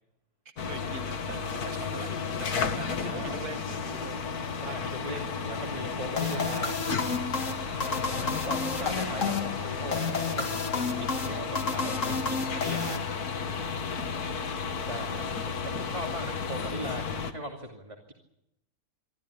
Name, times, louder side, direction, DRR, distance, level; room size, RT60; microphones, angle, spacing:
voice 1, 0.5-4.2 7.3-8.5 13.5-13.7, right 5 dB, 85° right, 7 dB, 2.0 m, -43 dB
sound 1, 0.6-17.3, left 5 dB, 85° left, 2.0 m, -33 dB
voice 2, 3.0-3.3 4.6-6.8 8.1-13.0 14.8-18.1, right 1 dB, 20° right, 0 dB, 2.7 m, -39 dB
sound 2, 6.2-13.5, left 4 dB, 55° left, 2.4 m, -32 dB
24.5 x 14.5 x 9.9 m, 0.84 s
omnidirectional pair, 1.6 m